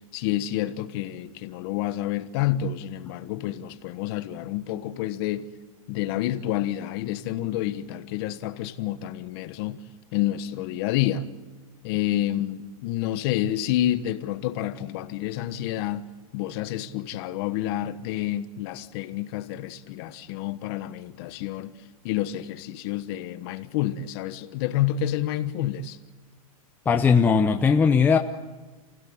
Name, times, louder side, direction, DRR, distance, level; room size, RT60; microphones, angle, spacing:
voice 1, 0.1-5.5 5.9-9.8 10.1-11.3 11.8-16.0 16.3-21.7 22.0-26.0, left 12 dB, 45° left, 1.4 m, -29 dB
voice 2, 26.9-28.2, left 5 dB, 10° left, 0.7 m, -19 dB
29.0 x 16.5 x 9.7 m
supercardioid pair, 155°, 18 cm